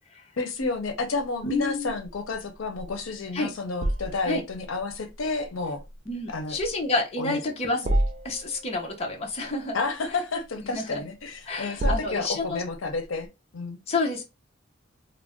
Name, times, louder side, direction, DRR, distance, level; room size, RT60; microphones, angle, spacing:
voice 1, 0.4-5.8 6.3-6.6 7.2-7.4 7.8-7.9 9.7-13.3 13.5-13.8, left 3 dB, 90° left, 0.6 m, -31 dB
sound 1, 0.6-13.3, right 1 dB, 35° right, 0.4 m, -33 dB
voice 2, 1.4-1.9 3.3-3.5 4.3-4.4 6.1-7.9 8.2-9.8 10.6-11.0 11.5-12.6 13.9-14.2, left 2 dB, 30° left, 0.7 m, -29 dB
2.4 x 2.0 x 3.5 m
head